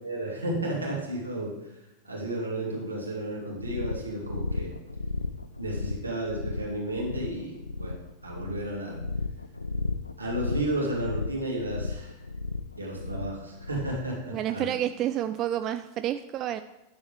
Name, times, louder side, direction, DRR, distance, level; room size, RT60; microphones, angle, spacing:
voice 1, 0.0-1.5 2.0-4.7 5.6-8.0 8.2-9.0 10.2-12.2 12.8-14.7, right 1 dB, 80° right, -4 dB, 2.6 m, -32 dB
sound 1, 3.6-14.1, left 3 dB, 80° left, 0.4 m, -34 dB
voice 2, 14.3-16.6, right 11 dB, 35° right, 11 dB, 0.3 m, -29 dB
9.4 x 7.1 x 3.4 m, 0.95 s
figure-of-eight pair, 90°, 0 cm